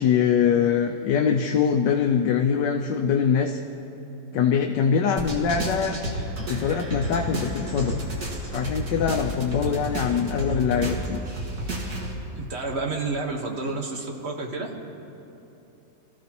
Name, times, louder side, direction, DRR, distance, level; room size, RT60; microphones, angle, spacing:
voice 1, 0.0-3.6 4.3-6.0 6.4-8.0 8.5-11.2, left 7 dB, 85° left, 2 dB, 1.3 m, -23 dB
sound 1, 5.2-12.1, right 1 dB, 60° right, 2.3 m, -31 dB
voice 2, 12.3-14.8, right 3 dB, 40° right, 1 dB, 1.4 m, -30 dB
25.0 x 14.5 x 2.9 m, 2.9 s
omnidirectional pair, 1.8 m